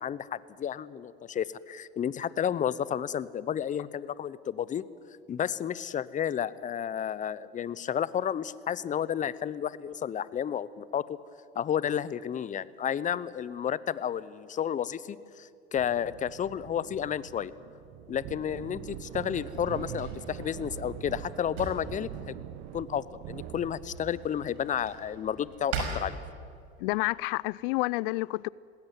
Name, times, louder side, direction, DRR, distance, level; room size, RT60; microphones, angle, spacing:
voice 1, 0.0-4.9 5.3-11.2 11.5-17.5 18.1-22.3 22.7-26.2, left 9 dB, 25° left, 0.7 m, -32 dB
Wind with Pitch Change, 15.7-24.1, right 12 dB, 50° right, 1.2 m, -43 dB
Drawer open or close, 18.1-26.8, right 4 dB, 70° right, 5.7 m, -42 dB
voice 2, 26.8-28.5, left 22 dB, 60° left, 0.5 m, -29 dB
20.0 x 17.5 x 9.4 m
hypercardioid pair, 95°, 32 cm